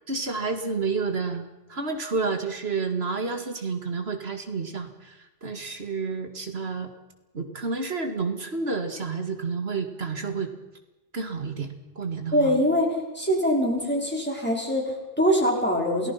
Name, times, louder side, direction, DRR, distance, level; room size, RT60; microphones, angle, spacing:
voice 1, 0.1-6.9 7.3-10.5 11.1-12.6, right 4 dB, 80° right, 6 dB, 2.4 m, -30 dB
voice 2, 12.3-16.1, equal, 10° left, -1 dB, 5.4 m, -23 dB
28.5 x 19.0 x 5.9 m, 1.0 s
omnidirectional pair, 1.1 m